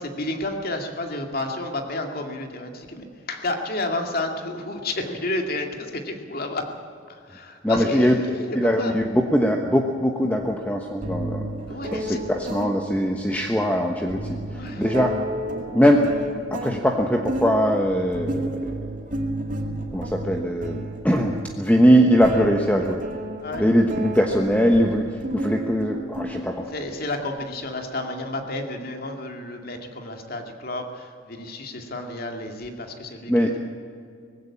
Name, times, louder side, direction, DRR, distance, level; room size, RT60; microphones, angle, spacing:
voice 1, 0.0-6.7 7.1-8.9 11.7-12.2 14.5-15.0 23.4-23.7 26.7-33.6, left 2 dB, 50° left, 4 dB, 2.3 m, -31 dB
voice 2, 7.6-8.2 8.5-11.5 11.9-15.1 15.7-16.1 16.5-18.6 19.9-23.0 23.6-25.1 25.3-26.7 33.3-33.5, equal, 10° left, 2 dB, 1.1 m, -21 dB
sound 1, 10.4-10.5 11.0-26.9, right 1 dB, 40° right, 2.2 m, -32 dB
19.5 x 16.0 x 8.6 m, 2.4 s
head